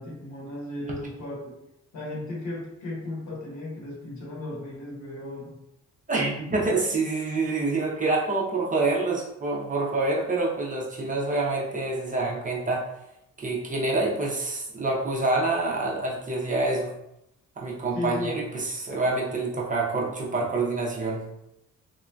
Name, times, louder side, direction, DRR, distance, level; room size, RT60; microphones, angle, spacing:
voice 1, 0.0-1.6 1.9-5.5 17.9-18.3, left 2 dB, 70° left, -3 dB, 1.1 m, -35 dB
voice 2, 6.1-12.9 13.4-16.9 17.6-21.2, right 3 dB, 25° right, -3 dB, 0.6 m, -27 dB
2.9 x 2.6 x 2.2 m, 0.84 s
cardioid pair, 90°, 30 cm